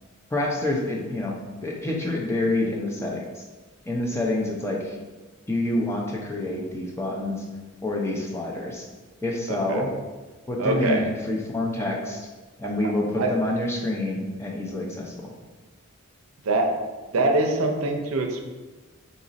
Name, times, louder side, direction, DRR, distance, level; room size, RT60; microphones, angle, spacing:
voice 1, 0.3-3.4 3.8-5.0 5.5-7.4 7.8-8.9 9.2-9.9 10.5-12.3 12.6-15.3, left 1 dB, 10° left, -1 dB, 0.5 m, -27 dB
voice 2, 9.5-9.8 10.6-11.0 12.8-12.9 13.2-13.3 16.5-16.7 17.1-18.5, right 2 dB, 70° right, 3 dB, 0.5 m, -24 dB
4.0 x 2.5 x 4.0 m, 1.2 s
head